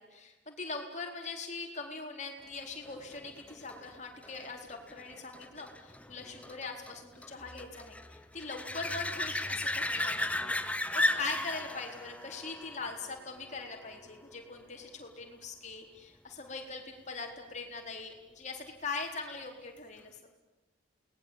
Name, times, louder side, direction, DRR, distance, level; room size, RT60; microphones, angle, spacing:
voice 1, 0.0-20.2, left 4 dB, 35° left, 2 dB, 4.4 m, -41 dB
sound 1, 2.8-14.1 19.8-19.9, left 2 dB, 5° left, 1.1 m, -36 dB
28.5 x 20.0 x 9.0 m, 1.1 s
head